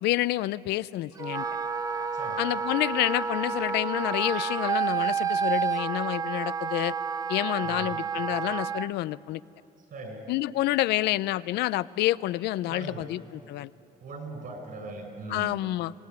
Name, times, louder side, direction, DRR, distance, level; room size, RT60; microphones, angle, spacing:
voice 1, 0.0-1.4 2.4-7.0 7.3-9.4 10.3-13.7 15.3-15.9, left 16 dB, 80° left, 17 dB, 0.5 m, -28 dB
Wind instrument woodwind instrument, 1.2-8.9, right 6 dB, 20° right, 0.6 m, -30 dB
voice 2, 2.1-2.4 7.6-8.0 9.8-10.3 12.7-13.1 14.0-15.5, right 3 dB, 55° right, 5 dB, 6.3 m, -40 dB
25.0 x 18.5 x 9.5 m, 2.9 s
cardioid pair, 110°, 17 cm